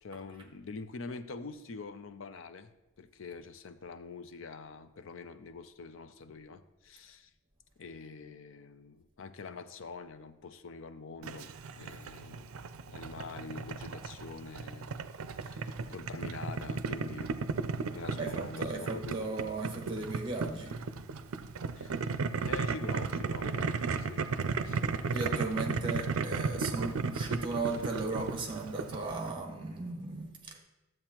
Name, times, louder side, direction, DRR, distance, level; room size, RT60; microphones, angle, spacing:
voice 1, 0.0-2.7 3.0-7.3 7.8-12.5 12.9-14.9 15.4-17.3 17.9-19.3 21.8-22.1 22.4-24.2 24.6-25.0, left 4 dB, 65° left, 11 dB, 0.5 m, -45 dB
Boiling, 11.2-29.3, right 4 dB, 85° right, 0.5 m, -35 dB
voice 2, 18.1-20.8 24.9-30.6, right 3 dB, 25° right, 2 dB, 1.3 m, -36 dB
12.5 x 7.7 x 3.0 m, 1.0 s
head